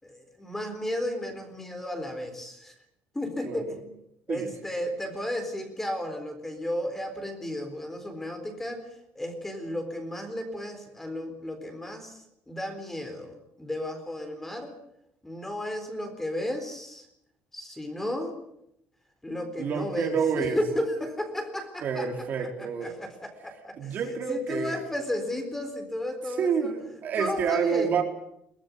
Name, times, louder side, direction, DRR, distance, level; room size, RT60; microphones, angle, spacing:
voice 1, 0.0-2.7 3.1-3.9 4.3-8.9 9.1-14.7 15.2-17.1 17.5-18.4 19.2-22.5 22.8-26.7 27.2-28.0, left 1 dB, 5° left, 6 dB, 4.1 m, -34 dB
voice 2, 3.4-3.8 4.3-4.5 19.6-20.6 21.8-22.9 23.8-24.8 26.4-28.0, right 6 dB, 45° right, 3 dB, 4.2 m, -28 dB
23.0 x 19.0 x 9.6 m, 0.76 s
cardioid pair, 155°, 4 cm